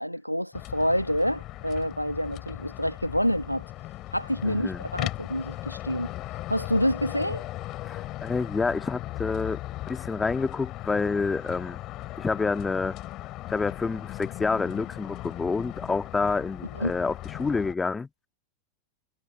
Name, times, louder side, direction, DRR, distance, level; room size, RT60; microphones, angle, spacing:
voice 1, 0.0-3.6 4.1-6.1 6.5-7.5 16.7-16.9, equal, 90° left, 1.2 m, -27 dB
sound 1, 0.5-17.7, left 16 dB, 35° left, 4.3 m, -38 dB
voice 2, 4.4-4.9 7.8-9.6 9.9-11.8 12.2-13.0 13.5-18.1, left 4 dB, 10° left, 1.6 m, -28 dB
figure-of-eight pair, 90°, 0 cm